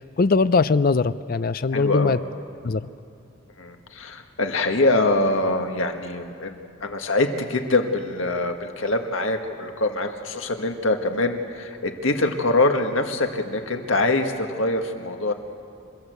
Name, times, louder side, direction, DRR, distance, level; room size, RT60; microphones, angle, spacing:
voice 1, 0.2-2.2 2.6-2.8, left 4 dB, 45° left, 15 dB, 0.4 m, -20 dB
voice 2, 1.7-2.2 3.6-6.6 6.8-15.3, left 2 dB, 75° left, 5 dB, 1.7 m, -24 dB
29.0 x 14.0 x 8.1 m, 2.5 s
head